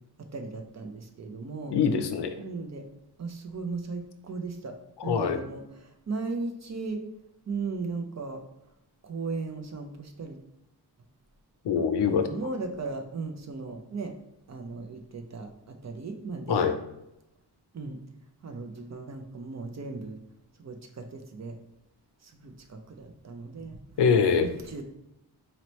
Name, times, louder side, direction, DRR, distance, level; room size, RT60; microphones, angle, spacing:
voice 1, 0.2-1.8 2.4-2.9 3.2-4.8 5.0-7.0 7.5-8.4 9.0-10.4 11.8-14.1 14.5-16.7 17.7-18.0 18.4-20.2 20.6-21.6 22.2-23.8 24.4-24.8, right 3 dB, 40° right, 5 dB, 0.5 m, -37 dB
voice 2, 1.7-2.3 5.0-5.4 11.6-12.3 16.5-16.7 24.0-24.5, left 6 dB, 75° left, 7 dB, 0.6 m, -23 dB
4.2 x 2.9 x 3.0 m, 0.86 s
wide cardioid pair, 105°, 41 cm